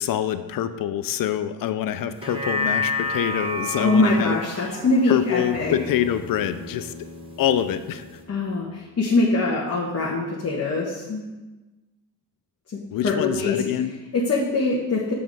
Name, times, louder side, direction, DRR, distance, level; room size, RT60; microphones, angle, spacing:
voice 1, 0.0-4.8 5.1-6.9 7.4-8.0 12.9-13.9, left 10 dB, 55° left, 11 dB, 0.6 m, -25 dB
sound 1, 2.1-6.7 7.1-7.2, left 2 dB, 15° right, 1.2 m, -30 dB
voice 2, 3.8-5.8 8.3-11.2 13.0-13.6 14.1-15.1, left 2 dB, 40° left, -4 dB, 1.4 m, -23 dB
Bass guitar, 5.5-9.9, left 3 dB, 15° left, 0.8 m, -41 dB
6.9 x 3.7 x 5.3 m, 1.1 s
supercardioid pair, 65°, 40 cm